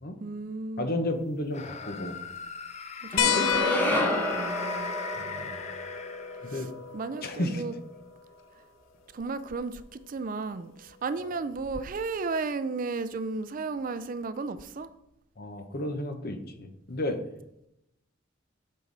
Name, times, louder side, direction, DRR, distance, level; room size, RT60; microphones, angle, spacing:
voice 1, 0.2-1.2 3.2-4.9 6.5-6.6 6.9-7.7 9.1-14.9, right 4 dB, 45° right, 0.4 m, -34 dB
voice 2, 0.8-2.2 3.1-3.5 4.0-4.1 5.2-5.6 6.4-6.7 7.2-7.6 11.2-11.3 15.4-17.2, left 1 dB, 50° left, 0.9 m, -32 dB
sound 1, 1.5-6.7, left 5 dB, 35° left, 0.6 m, -41 dB
sound 2, 3.1-7.3, left 1 dB, 10° left, 1.1 m, -31 dB
sound 3, 3.2-8.2 9.8-9.9 11.5-11.6, left 7 dB, 85° left, 0.5 m, -32 dB
7.8 x 5.6 x 4.0 m
head